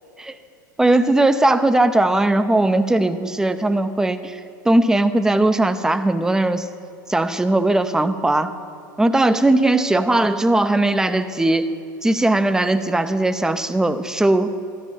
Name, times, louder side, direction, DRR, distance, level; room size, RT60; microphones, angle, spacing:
voice 1, 0.8-6.7 7.1-8.5 9.0-11.7 12.0-14.5, right 2 dB, 5° right, 10 dB, 0.6 m, -18 dB
14.0 x 12.5 x 5.4 m, 2.5 s
figure-of-eight pair, 85°, 11 cm